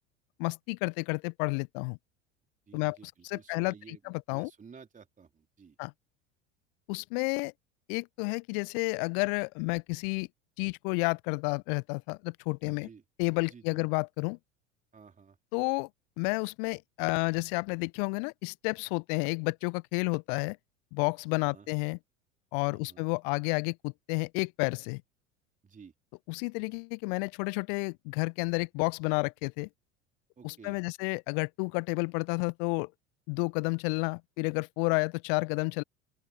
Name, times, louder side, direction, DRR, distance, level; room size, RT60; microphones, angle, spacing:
voice 1, 0.4-2.0 2.7-3.0 3.2-4.5 5.8-5.9 6.9-7.5 7.9-10.3 10.6-12.9 13.2-14.4 15.5-15.9 16.2-20.6 20.9-22.0 22.5-25.0 26.3-29.7 30.4-32.9 33.3-35.8, left 40 dB or more, 45° left, 0.7 m, -31 dB
voice 2, 2.7-4.0 4.3-5.8 12.6-13.0 13.5-13.9 14.9-15.4 21.4-21.7 22.6-23.0 25.6-25.9 30.4-30.8, right 5 dB, 20° right, 3.8 m, -53 dB
open air
figure-of-eight pair, 75°, 37 cm